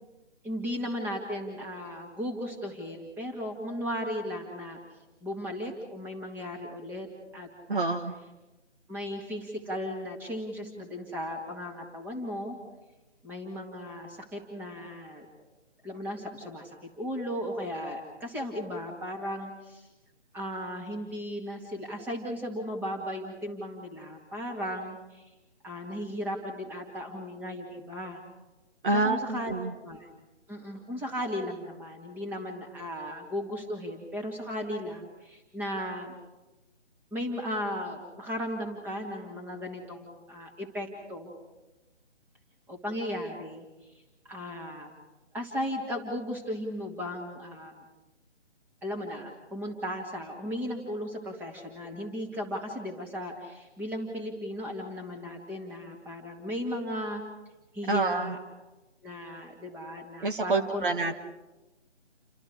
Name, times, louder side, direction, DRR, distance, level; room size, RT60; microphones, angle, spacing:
voice 1, 0.4-4.8 5.2-7.1 7.3-8.0 8.9-12.6 13.2-15.2 15.8-19.9 20.3-25.3 25.6-28.2 28.9-29.5 29.8-30.1 30.5-36.1 37.1-41.3 42.7-43.7 44.3-44.9 45.3-47.8 48.8-57.2 57.7-58.4 59.0-60.9, equal, 5° right, 1 dB, 2.2 m, -36 dB
voice 2, 7.7-8.1 28.8-29.7 57.9-58.4 60.2-61.1, right 3 dB, 45° right, 6 dB, 1.5 m, -27 dB
29.5 x 25.5 x 4.8 m, 1.1 s
figure-of-eight pair, 150°, 36 cm